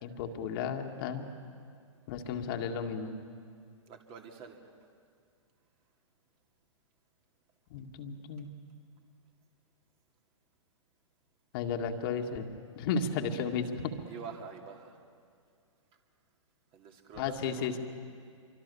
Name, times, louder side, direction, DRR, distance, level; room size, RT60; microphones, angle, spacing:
voice 1, 0.0-1.3 2.1-3.1 7.7-8.5 11.5-12.5 12.8-13.9 17.2-17.8, left 6 dB, 45° left, 4 dB, 2.0 m, -34 dB
voice 2, 3.9-4.6 14.1-15.0 16.7-17.8, right 6 dB, 35° right, 3 dB, 2.6 m, -47 dB
26.5 x 24.0 x 7.0 m, 2.2 s
hypercardioid pair, 120°, 17 cm